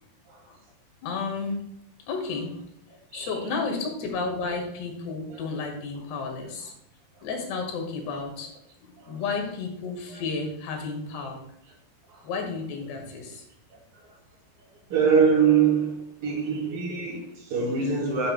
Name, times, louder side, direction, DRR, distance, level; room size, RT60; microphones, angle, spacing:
voice 1, 1.0-1.6 2.1-2.6 3.1-6.7 7.2-8.5 8.8-11.4 12.2-13.4, left 4 dB, 85° left, 3.8 m, -32 dB
voice 2, 14.9-18.3, right 6 dB, 60° right, 3.9 m, -23 dB
10.5 x 10.0 x 2.3 m
omnidirectional pair, 4.7 m